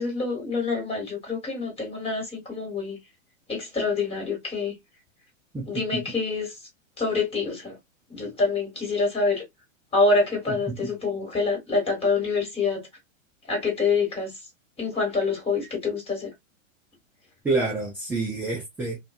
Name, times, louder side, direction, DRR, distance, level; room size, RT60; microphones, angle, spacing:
voice 1, 0.0-3.0 3.5-4.7 5.7-6.5 7.0-7.8 8.1-9.4 9.9-12.8 13.5-14.3 14.8-16.3, left 4 dB, 15° left, 1.6 m, -26 dB
voice 2, 5.5-6.0 10.5-10.8 17.4-19.0, right 3 dB, 5° right, 0.4 m, -28 dB
2.5 x 2.3 x 2.3 m
hypercardioid pair, 125°, 39 cm